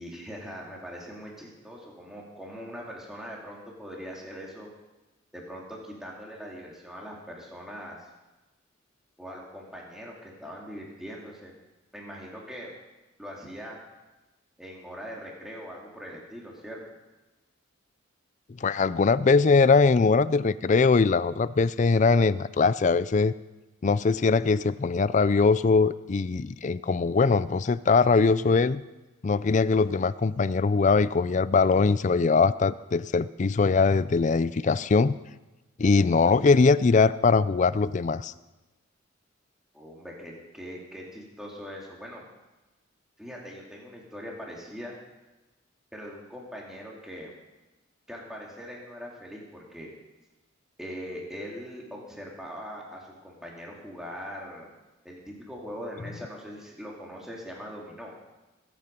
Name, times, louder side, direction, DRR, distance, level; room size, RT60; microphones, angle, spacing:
voice 1, 0.0-4.7 5.3-8.1 9.2-11.5 11.9-12.7 13.2-13.8 14.6-16.8 39.7-42.2 43.2-44.9 45.9-47.4 48.1-49.9 50.8-54.7 55.0-58.1, equal, 5° right, -3 dB, 2.4 m, -41 dB
voice 2, 18.6-23.3 23.8-28.8 29.2-35.2 35.8-38.3, left 4 dB, 40° left, 16 dB, 0.4 m, -22 dB
21.5 x 8.5 x 5.2 m, 1.1 s
head